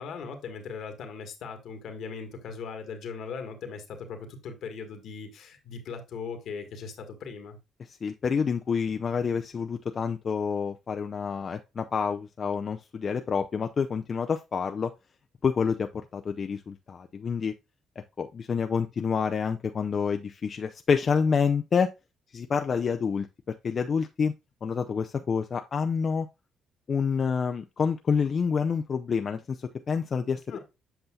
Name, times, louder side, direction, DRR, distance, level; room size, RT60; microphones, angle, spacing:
voice 1, 0.0-7.6 30.5-30.6, left 5 dB, 75° left, 1.6 m, -39 dB
voice 2, 7.9-14.9 15.4-17.5 18.0-21.9 22.3-24.3 24.6-26.3 26.9-30.4, left 6 dB, 45° left, 0.5 m, -28 dB
8.0 x 5.6 x 2.3 m
cardioid pair, 90°, 0 cm